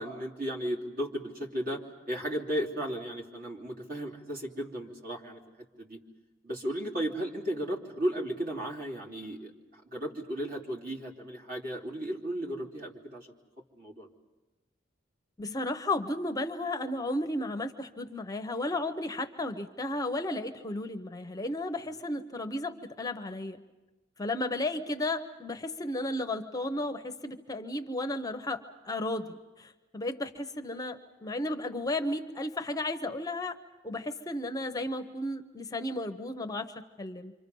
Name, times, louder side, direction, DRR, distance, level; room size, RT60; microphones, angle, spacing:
voice 1, 0.0-5.4 5.8-6.0 6.4-13.3 13.8-14.1 21.9-22.0, right 1 dB, 45° right, 0 dB, 3.0 m, -35 dB
voice 2, 15.4-23.6 24.2-33.6 33.8-37.3, left 1 dB, 20° left, 8 dB, 0.8 m, -34 dB
28.5 x 25.5 x 5.4 m, 1.1 s
head